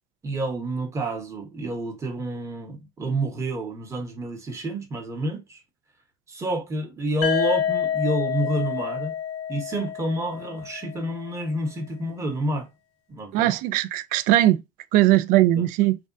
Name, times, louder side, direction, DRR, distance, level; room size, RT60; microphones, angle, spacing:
voice 1, 0.2-5.6 6.3-9.1 9.5-12.7 13.1-13.5 15.5-15.7, right 1 dB, 20° right, 1.0 m, -29 dB
sound 1, 7.2-11.1, left 9 dB, 70° left, 0.9 m, -28 dB
voice 2, 13.3-14.6 14.9-16.0, right 15 dB, 65° right, 0.4 m, -19 dB
3.4 x 2.2 x 2.5 m
cardioid pair, 135°, 15 cm